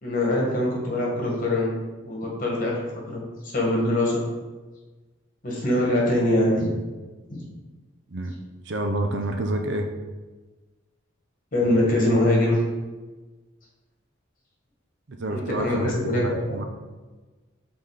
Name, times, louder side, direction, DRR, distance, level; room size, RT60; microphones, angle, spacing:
voice 1, 0.0-1.7 2.0-3.2 3.5-4.2 5.4-6.7 7.3-7.4 11.5-12.6 15.3-16.4, left 1 dB, 40° left, -3 dB, 1.6 m, -23 dB
voice 2, 8.7-9.9 15.1-16.6, right 1 dB, 55° right, 5 dB, 0.6 m, -28 dB
5.7 x 4.0 x 4.8 m, 1.3 s
head